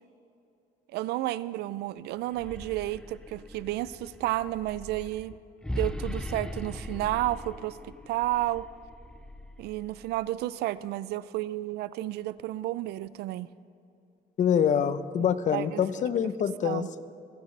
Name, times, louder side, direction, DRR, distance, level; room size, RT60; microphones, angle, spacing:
voice 1, 0.9-5.4 5.8-8.7 9.6-13.5 15.2-15.8 16.6-16.9, right 15 dB, 75° right, 18 dB, 0.4 m, -32 dB
sound 1, 2.2-10.3, left 1 dB, 5° left, 0.6 m, -40 dB
voice 2, 14.4-16.8, left 8 dB, 45° left, 13 dB, 0.7 m, -25 dB
27.5 x 10.5 x 3.3 m, 2.6 s
cardioid pair, 110°, 17 cm